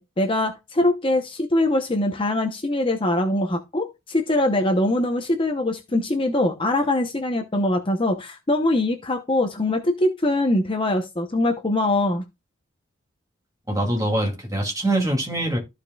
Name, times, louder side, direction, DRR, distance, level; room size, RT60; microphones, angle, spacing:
voice 1, 0.0-12.2, left 1 dB, 25° left, 0.8 m, -22 dB
voice 2, 13.7-15.6, right 1 dB, 15° right, 2.5 m, -23 dB
14.0 x 5.1 x 2.3 m
head